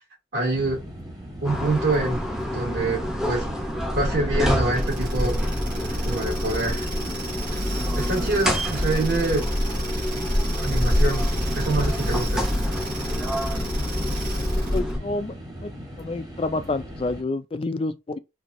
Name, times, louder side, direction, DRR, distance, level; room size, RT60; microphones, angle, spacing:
voice 1, 0.3-0.8 1.4-2.2 2.5-3.5 3.9-5.4 6.0-6.9 7.9-9.5 10.6-11.2 11.5-12.5, right 2 dB, 65° right, 2.5 m, -25 dB
sound 1, 0.5-17.2, equal, 20° right, 1.0 m, -40 dB
sound 2, 1.4-15.0, equal, 5° right, 0.6 m, -27 dB
sound 3, 4.7-14.9, equal, 45° right, 2.2 m, -31 dB
voice 2, 14.7-15.3 15.6-15.7 16.0-18.2, left 2 dB, 30° left, 0.3 m, -28 dB
4.5 x 2.7 x 2.6 m
head